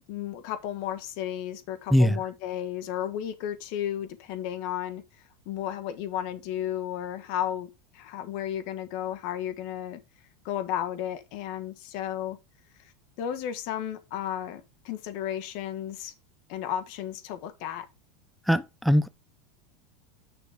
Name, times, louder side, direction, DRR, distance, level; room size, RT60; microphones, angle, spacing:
voice 1, 0.1-5.0 5.4-10.0 10.4-12.4 12.8-12.9 13.2-16.1 16.5-17.8, left 11 dB, 55° left, 1.6 m, -33 dB
voice 2, 18.5-19.1, equal, ahead, 0.5 m, -21 dB
9.4 x 6.4 x 3.7 m
supercardioid pair, 155°, 0 cm